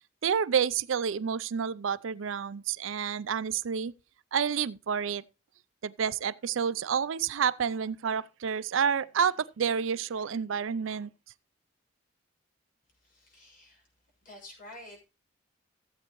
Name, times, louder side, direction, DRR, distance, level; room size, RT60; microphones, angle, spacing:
voice 1, 0.2-3.9 4.3-5.2 5.8-11.1, right 7 dB, 80° right, 0.5 m, -29 dB
voice 2, 13.0-13.8 14.2-15.0, left 1 dB, 45° left, 6.0 m, -49 dB
15.0 x 8.2 x 3.0 m
head